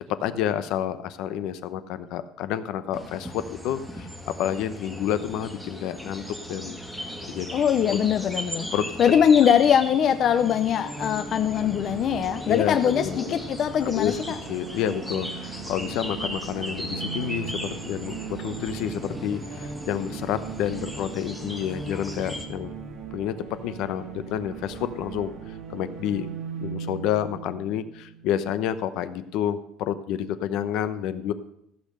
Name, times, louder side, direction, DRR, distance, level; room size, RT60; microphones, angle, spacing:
voice 1, 0.1-6.2 6.5-6.8 7.3-7.5 7.9-8.0 8.7-8.9 12.5-13.3 13.9-14.1 14.5-22.7 23.1-23.4 23.6-25.3 25.7-26.3 26.6-31.3, left 10 dB, 65° left, 12 dB, 0.8 m, -29 dB
sound 1, 2.9-22.4, equal, ahead, 1.4 m, -37 dB
voice 2, 7.5-8.7 9.0-14.4, left 8 dB, 40° left, 9 dB, 0.5 m, -22 dB
sound 2, 10.1-28.8, right 6 dB, 55° right, 1.6 m, -39 dB
15.0 x 6.7 x 6.6 m, 0.75 s
cardioid pair, 165°, 0 cm